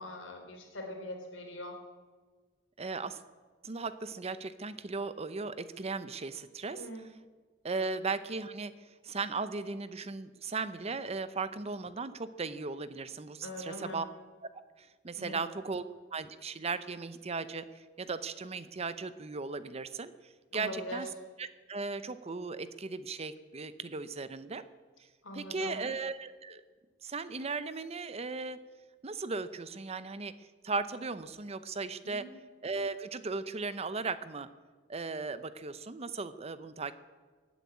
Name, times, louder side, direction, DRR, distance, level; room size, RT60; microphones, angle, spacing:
voice 1, 0.0-1.8 6.7-7.0 13.4-14.1 15.1-15.5 20.5-21.1 25.2-25.8 32.0-32.3, left 1 dB, 90° left, 3 dB, 3.4 m, -42 dB
voice 2, 2.8-3.2 3.6-6.9 7.6-8.7 9.0-14.0 14.8-15.8 16.1-17.7 18.0-20.1 20.5-21.1 21.4-24.6 25.3-26.6 27.0-28.6 29.0-30.3 30.6-32.3 32.6-34.5 34.9-36.9, right 4 dB, 35° right, 13 dB, 0.7 m, -37 dB
16.5 x 9.4 x 8.6 m, 1.4 s
head